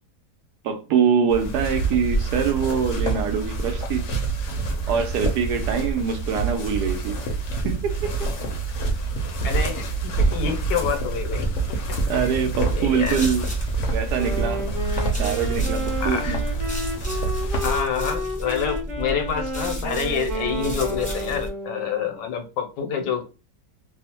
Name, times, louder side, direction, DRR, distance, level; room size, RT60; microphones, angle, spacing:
voice 1, 0.6-4.1 4.9-7.2 7.6-8.3 12.1-13.5 13.9-14.6 15.2-16.4, right 6 dB, 75° right, 1.1 m, -24 dB
sound 1, 1.3-17.8, right 3 dB, 60° left, 0.8 m, -26 dB
voice 2, 9.4-12.3 12.7-13.2 16.0-16.4 17.6-23.2, left 7 dB, 80° left, 1.3 m, -28 dB
sound 2, 12.9-21.5, equal, 5° left, 0.7 m, -32 dB
Wind instrument woodwind instrument, 14.2-22.2, equal, 55° right, 1.0 m, -31 dB
3.0 x 2.0 x 2.8 m
omnidirectional pair, 1.8 m